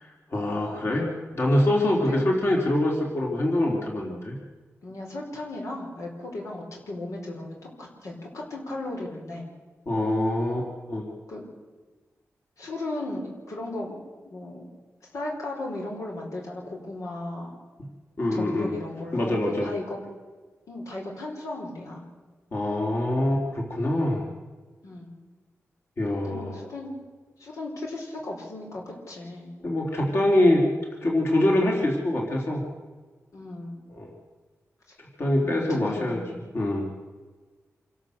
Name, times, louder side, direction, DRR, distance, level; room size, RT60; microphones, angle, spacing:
voice 1, 0.3-1.1 1.3-4.4 9.9-11.1 18.2-18.7 19.1-19.7 22.5-24.2 26.0-26.6 29.6-30.6 31.0-32.6 33.9-34.1 35.0-36.2 36.5-36.9, left 1 dB, 50° left, 0 dB, 3.8 m, -24 dB
voice 2, 1.9-2.3 4.8-9.4 11.3-11.5 12.6-14.6 15.1-17.5 18.3-20.0 20.7-22.0 24.1-24.3 24.8-25.1 26.3-27.0 27.4-29.5 33.3-33.8 35.4-36.4, left 2 dB, 80° left, -1 dB, 4.7 m, -36 dB
26.5 x 12.5 x 8.0 m, 1.4 s
wide cardioid pair, 100°, 5 cm